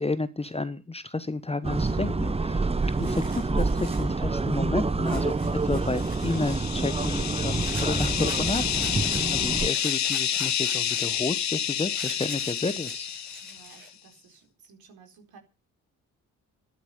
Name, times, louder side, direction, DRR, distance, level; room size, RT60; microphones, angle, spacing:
voice 1, 0.0-2.7 3.0-5.4 5.6-13.1, left 3 dB, 15° left, 14 dB, 1.1 m, -31 dB
sound 1, 1.6-9.7, right 3 dB, 15° right, 1.0 m, -27 dB
sound 2, 2.5-2.6 2.8-4.1 5.0-6.7 7.6-9.2 9.7-13.9, right 1 dB, 90° right, 6.8 m, -43 dB
sound 3, 6.0-13.8, left 11 dB, 40° left, 0.9 m, -29 dB
voice 2, 13.4-15.4, right 5 dB, 55° right, 3 dB, 4.5 m, -54 dB
12.0 x 11.5 x 8.0 m, 0.34 s
figure-of-eight pair, 45°, 42 cm